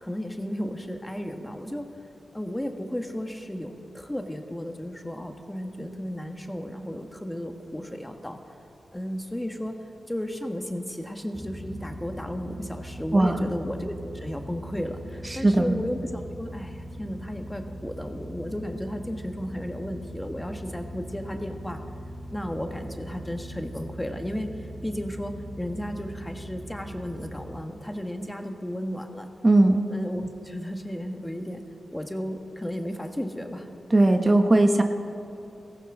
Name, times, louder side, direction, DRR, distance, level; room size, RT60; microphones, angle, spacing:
voice 1, 0.0-1.9 2.3-8.4 8.9-9.8 10.1-21.8 22.3-29.3 29.9-31.6 31.9-33.7, equal, 15° left, 5 dB, 1.6 m, -34 dB
sound 1, 11.3-27.6, equal, 15° right, 3.2 m, -40 dB
voice 2, 13.1-13.5 15.3-15.7 29.4-29.8 33.9-34.8, right 2 dB, 30° right, 5 dB, 1.0 m, -19 dB
18.0 x 14.5 x 3.9 m, 2.8 s
cardioid pair, 45°, 0 cm